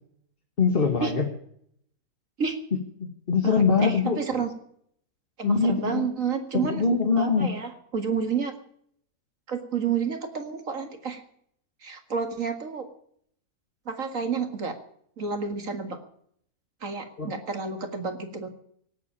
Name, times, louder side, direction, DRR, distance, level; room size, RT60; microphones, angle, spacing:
voice 1, 0.6-1.3 3.0-4.2 5.4-6.1 6.6-7.5 17.2-17.3, left 5 dB, 40° left, 3 dB, 2.0 m, -23 dB
voice 2, 3.4-4.5 5.4-6.8 7.2-8.5 9.5-11.2 11.8-12.9 13.9-14.8 15.2-16.0 16.8-18.5, right 6 dB, 60° right, 6 dB, 2.3 m, -30 dB
18.0 x 8.4 x 8.4 m, 0.67 s
omnidirectional pair, 1.6 m